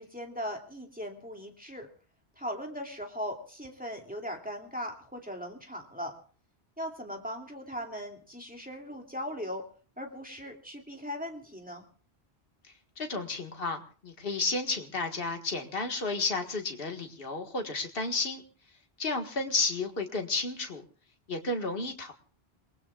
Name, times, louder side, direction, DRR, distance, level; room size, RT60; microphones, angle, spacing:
voice 1, 0.0-1.9 2.4-6.2 6.8-9.6 10.0-11.8, equal, 10° right, 1 dB, 2.6 m, -39 dB
voice 2, 13.0-18.4 19.0-20.8 21.3-22.1, left 3 dB, 60° left, 4 dB, 1.9 m, -32 dB
28.5 x 20.0 x 2.4 m, 0.41 s
omnidirectional pair, 1.1 m